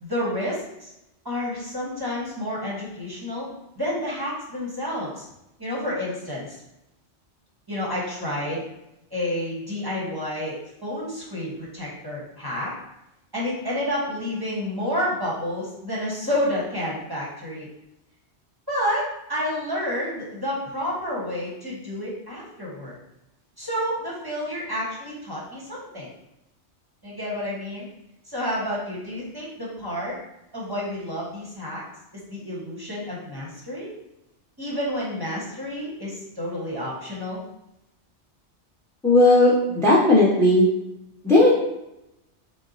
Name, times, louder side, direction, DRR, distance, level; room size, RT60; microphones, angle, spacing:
voice 1, 0.0-0.9 1.2-3.5 3.8-5.2 5.6-6.6 7.7-8.6 9.1-12.7 13.3-17.7 18.7-23.0 23.6-26.1 27.0-27.9 28.2-30.2 30.5-31.8 32.1-33.9 34.6-37.4, left 1 dB, 25° right, -5 dB, 0.8 m, -30 dB
voice 2, 39.0-40.7 41.2-41.5, left 2 dB, 5° left, -5 dB, 0.5 m, -16 dB
3.9 x 2.1 x 3.8 m, 0.87 s
omnidirectional pair, 1.2 m